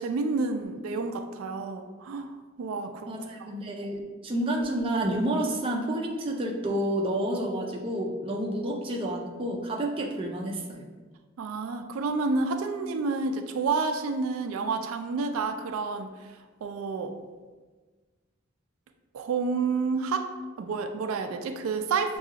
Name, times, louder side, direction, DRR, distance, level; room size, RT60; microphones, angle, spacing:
voice 1, 0.0-3.1 3.4-3.5 11.4-16.1 16.6-17.1 19.1-20.3 20.6-22.2, right 4 dB, 90° right, 7 dB, 0.3 m, -29 dB
voice 2, 3.1-10.9, right 1 dB, 25° right, 0 dB, 0.4 m, -29 dB
5.8 x 2.3 x 2.8 m, 1.4 s
head